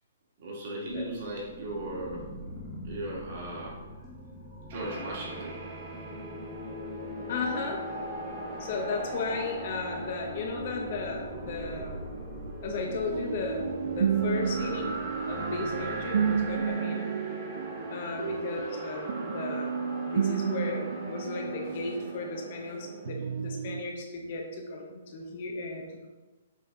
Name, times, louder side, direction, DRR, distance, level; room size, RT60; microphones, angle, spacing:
voice 1, 0.4-2.3 2.8-3.8 4.7-5.5 18.0-18.4, right 1 dB, 45° right, -4 dB, 2.1 m, -37 dB
sound 1, 0.9-16.7, equal, ahead, 1.3 m, -45 dB
sound 2, 4.7-23.1, right 1 dB, 20° right, 1.1 m, -40 dB
voice 2, 7.3-7.8 8.6-12.0 12.6-15.0 15.3-17.1 17.9-26.1, left 3 dB, 40° left, 2 dB, 0.9 m, -35 dB
sound 3, 12.7-22.7 23.1-23.8, right 7 dB, 60° right, 0.3 m, -32 dB
7.4 x 4.1 x 3.8 m, 1.2 s
hypercardioid pair, 175°, 0 cm